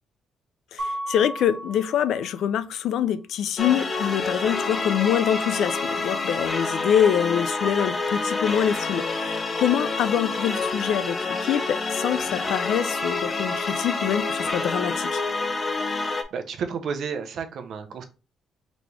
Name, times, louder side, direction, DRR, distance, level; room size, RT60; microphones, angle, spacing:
voice 1, 0.7-15.2, left 9 dB, 75° left, 0.4 m, -25 dB
Mallet percussion, 0.8-2.6, right 1 dB, 20° right, 1.6 m, -34 dB
sound 1, 3.6-16.2, left 3 dB, 30° left, 0.6 m, -28 dB
voice 2, 16.3-18.0, right 6 dB, 65° right, 0.7 m, -31 dB
4.1 x 3.0 x 3.4 m
cardioid pair, 120°, 0 cm